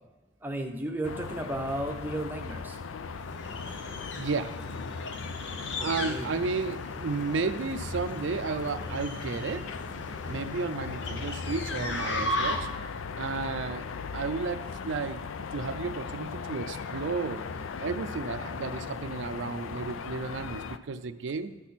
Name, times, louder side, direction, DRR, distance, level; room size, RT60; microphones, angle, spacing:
voice 1, 0.4-2.8 5.8-6.3, right 1 dB, 10° right, 3 dB, 0.7 m, -34 dB
sound 1, 1.0-20.8, left 5 dB, 85° left, 0.4 m, -38 dB
sound 2, 3.1-12.9, left 1 dB, 65° left, 0.9 m, -37 dB
voice 2, 4.1-4.6 5.8-9.7 10.3-12.7 13.2-13.9 14.1-15.2 15.5-17.5 17.8-21.6, right 4 dB, 70° right, 9 dB, 0.4 m, -33 dB
12.5 x 6.1 x 4.2 m, 1.2 s
head